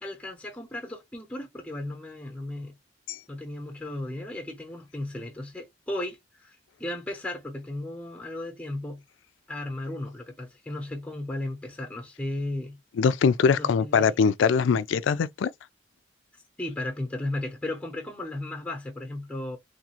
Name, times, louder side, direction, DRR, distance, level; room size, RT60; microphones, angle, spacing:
voice 1, 0.0-2.7 3.3-9.0 9.5-12.8 13.5-14.2 16.6-19.6, left 1 dB, 5° left, 0.7 m, -35 dB
voice 2, 13.0-15.5, left 6 dB, 75° left, 0.3 m, -22 dB
3.2 x 2.4 x 2.9 m
head